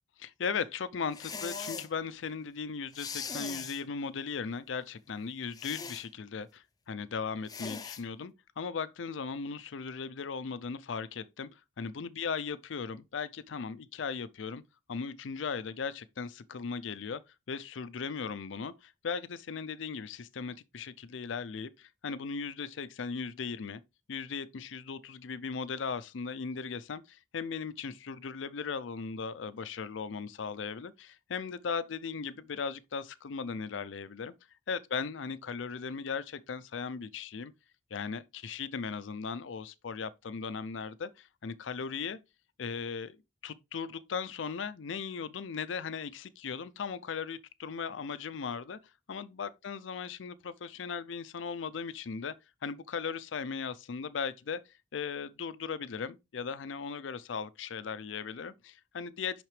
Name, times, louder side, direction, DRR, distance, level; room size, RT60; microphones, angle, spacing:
voice 1, 0.2-14.6 14.9-17.2 17.5-23.8 24.1-34.3 34.7-37.5 37.9-42.2 42.6-43.2 43.4-48.8 49.1-52.3 52.6-54.6 54.9-59.4, left 5 dB, 90° left, 0.5 m, -37 dB
sound 1, 1.1-1.9 2.9-3.8 5.5-6.1 7.5-8.0, left 5 dB, 20° left, 0.5 m, -40 dB
6.1 x 5.8 x 3.2 m
head